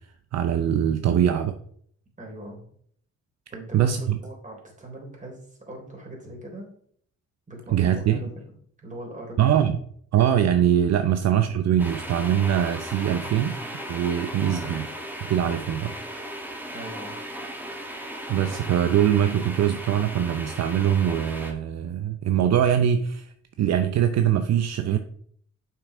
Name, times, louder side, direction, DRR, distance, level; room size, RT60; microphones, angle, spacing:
voice 1, 0.3-1.6 3.7-4.2 7.7-8.2 9.4-9.8 10.1-13.6 13.9-14.8 15.2-15.9 18.3-25.0, right 10 dB, 60° right, 9 dB, 0.7 m, -22 dB
voice 2, 2.2-2.6 3.5-6.7 7.5-8.3 8.8-9.4 16.7-17.2, right 1 dB, 25° right, 0 dB, 3.5 m, -40 dB
sound 1, 11.8-21.5, equal, 5° right, 1.7 m, -36 dB
7.3 x 5.8 x 4.9 m, 0.62 s
cardioid pair, 90°, 30 cm